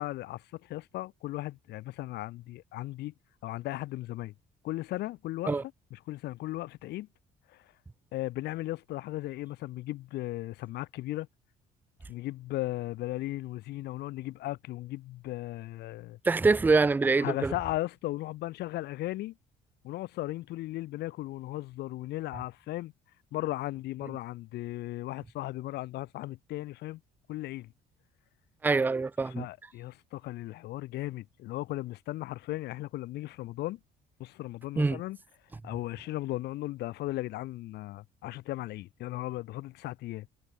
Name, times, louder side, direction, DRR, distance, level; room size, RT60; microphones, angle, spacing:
voice 1, 0.0-3.1 3.4-4.3 4.6-5.6 5.9-7.1 7.5-7.6 8.1-11.3 12.1-16.2 17.2-19.4 19.8-22.9 23.3-27.0 27.3-27.7 29.2-33.8 34.2-35.2 35.6-40.3, left 16 dB, 75° left, 1.6 m, -36 dB
voice 2, 16.2-17.5 28.6-29.5 34.8-35.0, right 3 dB, 10° right, 0.4 m, -25 dB
cardioid pair, 110°, 17 cm